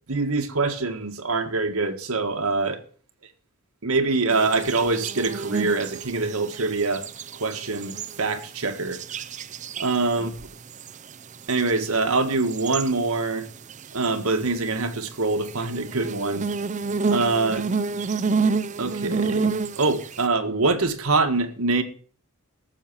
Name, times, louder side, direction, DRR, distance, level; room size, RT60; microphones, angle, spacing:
voice 1, 0.0-2.8 3.8-7.0 7.4-9.0 9.7-10.5 11.5-13.5 13.9-16.5 17.1-17.7 18.8-21.8, right 3 dB, 85° right, 1.7 m, -24 dB
sound 1, 4.3-8.2 8.6-10.2 10.7-11.1 11.4-11.8 12.2-13.0 13.7-14.1 15.4-20.2, right 4 dB, 35° right, 0.5 m, -29 dB
13.0 x 7.2 x 7.2 m
head